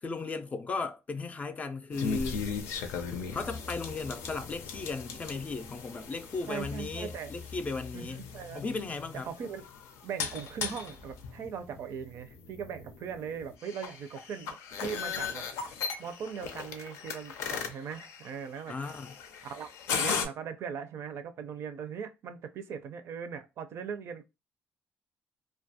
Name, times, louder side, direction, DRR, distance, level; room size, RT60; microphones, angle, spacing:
voice 1, 0.0-2.4 3.3-8.2 8.5-9.3 18.7-19.2, left 4 dB, 30° left, 0.4 m, -36 dB
sound 1, 1.9-20.3, left 5 dB, 85° left, 0.5 m, -38 dB
voice 2, 6.5-7.3 7.9-8.6 9.3-9.7 10.0-18.8 19.4-19.7 20.0-24.2, right 7 dB, 65° right, 0.5 m, -40 dB
2.3 x 2.1 x 2.7 m
cardioid pair, 105°, 5 cm